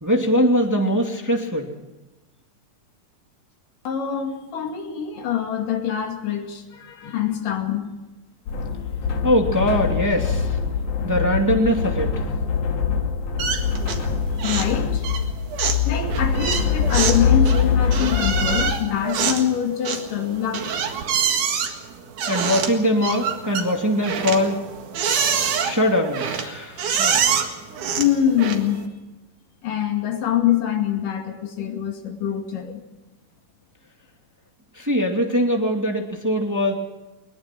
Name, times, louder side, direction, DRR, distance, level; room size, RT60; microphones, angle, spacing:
voice 1, 0.0-1.7 9.2-10.6 11.0-12.1 22.3-24.6 25.6-27.2 34.8-36.7, equal, 5° right, 2 dB, 2.2 m, -21 dB
voice 2, 3.8-7.9 14.4-15.1 15.8-20.8 27.9-28.9 29.6-32.8, left 9 dB, 85° left, 3 dB, 4.0 m, -24 dB
sound 1, 8.5-18.7, left 6 dB, 70° left, 3.3 m, -23 dB
sound 2, 13.4-14.1 14.4-14.8 15.0-28.8, right 7 dB, 70° right, 3.4 m, -26 dB
21.5 x 21.0 x 6.1 m, 1.1 s
omnidirectional pair, 3.7 m